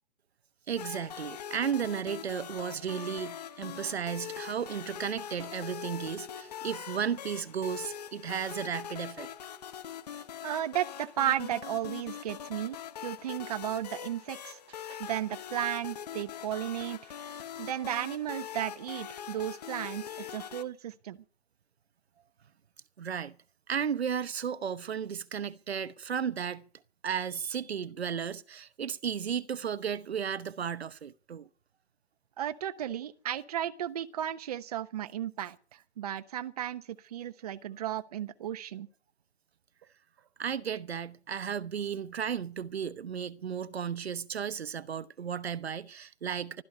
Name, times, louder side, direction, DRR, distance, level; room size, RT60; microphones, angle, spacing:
voice 1, 0.7-9.3 14.9-15.0 20.3-20.5 23.0-23.4 23.7-26.6 27.0-31.5 40.4-46.6, right 7 dB, 70° right, 1.1 m, -34 dB
sound 1, 0.8-20.6, left 9 dB, 40° left, 1.2 m, -42 dB
voice 2, 10.4-12.8 13.0-14.6 15.0-17.1 17.6-21.2 32.4-38.9, right 11 dB, 35° right, 1.1 m, -34 dB
15.5 x 13.0 x 6.7 m
hypercardioid pair, 160°, 32 cm